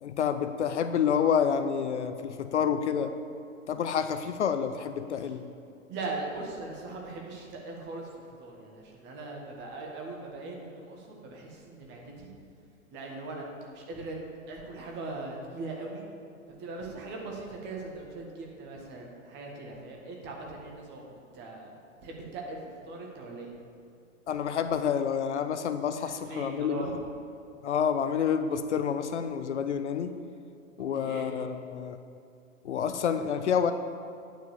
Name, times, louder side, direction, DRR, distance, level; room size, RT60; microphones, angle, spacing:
voice 1, 0.0-3.1 3.7-5.4 24.3-27.0 27.6-30.1 30.8-32.0 32.6-33.7, left 7 dB, 60° left, 9 dB, 0.5 m, -28 dB
voice 2, 5.9-8.1 8.4-12.3 12.9-14.2 14.5-16.0 16.6-21.7 22.0-22.6 22.8-23.5 26.0-26.9 31.0-31.3, right 3 dB, 25° right, -1 dB, 1.6 m, -40 dB
9.1 x 4.7 x 7.2 m, 2.4 s
figure-of-eight pair, 105°, 40 cm